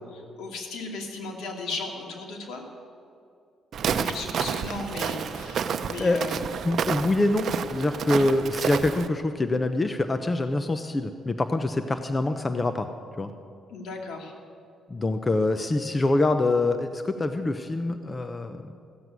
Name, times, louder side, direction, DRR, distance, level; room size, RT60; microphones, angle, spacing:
voice 1, 0.1-2.6 4.0-5.6 5.9-6.4 13.7-14.3, left 3 dB, 80° left, 1 dB, 2.4 m, -36 dB
Walk footsteps, 3.7-9.1, right 7 dB, 65° right, 0.7 m, -30 dB
voice 2, 6.6-12.9 13.2-13.3 14.9-18.7, left 2 dB, 25° left, 8 dB, 0.7 m, -25 dB
15.0 x 7.9 x 9.3 m, 2.5 s
cardioid pair, 90°, 0 cm